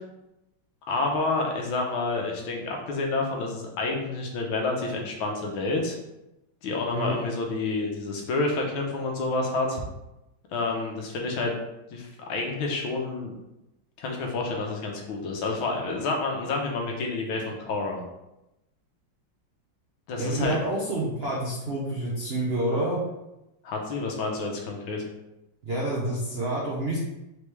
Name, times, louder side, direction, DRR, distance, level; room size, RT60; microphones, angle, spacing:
voice 1, 0.9-6.0 6.6-9.8 10.5-11.5 11.9-13.3 14.0-18.0 20.1-20.6 23.6-25.0, left 3 dB, 85° left, 1 dB, 1.6 m, -29 dB
voice 2, 20.2-23.0 25.6-27.0, right 1 dB, 65° right, -4 dB, 0.6 m, -28 dB
4.6 x 3.1 x 3.4 m, 0.93 s
omnidirectional pair, 2.2 m